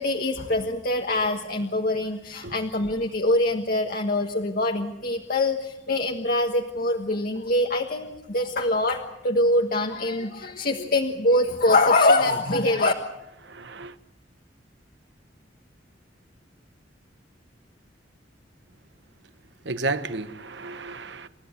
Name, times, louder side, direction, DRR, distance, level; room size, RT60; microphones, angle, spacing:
voice 1, 0.0-12.9, left 2 dB, 50° left, 1.5 m, -24 dB
voice 2, 13.4-14.0 19.6-21.3, right 3 dB, 65° right, 1.2 m, -32 dB
30.0 x 14.0 x 8.4 m
head